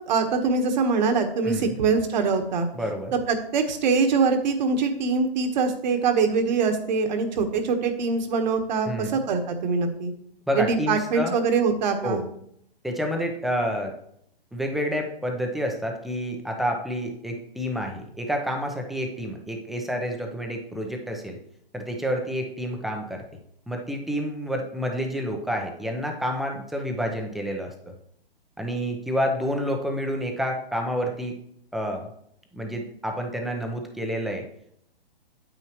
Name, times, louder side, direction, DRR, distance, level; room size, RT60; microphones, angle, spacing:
voice 1, 0.1-2.7 3.1-10.1 10.5-12.2, right 4 dB, 45° right, 6 dB, 1.4 m, -23 dB
voice 2, 1.4-1.8 2.7-3.1 8.9-9.2 10.5-11.3 12.0-12.2 12.8-13.9 14.5-21.4 21.7-23.2 23.7-27.9 28.6-31.4 31.7-32.1 32.5-34.5, equal, ahead, 3 dB, 0.7 m, -29 dB
9.1 x 9.0 x 3.1 m, 0.71 s
hypercardioid pair, 140°, 31 cm